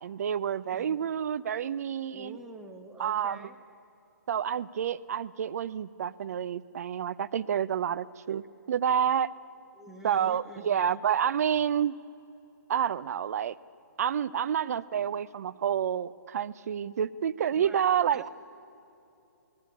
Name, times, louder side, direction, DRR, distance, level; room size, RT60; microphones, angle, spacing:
voice 1, 0.0-2.4 3.0-3.5 4.3-9.3 10.0-11.9 12.7-13.6 14.0-18.3, right 9 dB, 55° right, 15 dB, 0.7 m, -29 dB
voice 2, 2.1-3.6 8.3-8.4 9.7-11.0 17.5-18.3, right 1 dB, 5° right, 2 dB, 1.6 m, -47 dB
29.0 x 18.5 x 8.4 m, 2.8 s
figure-of-eight pair, 135°, 10 cm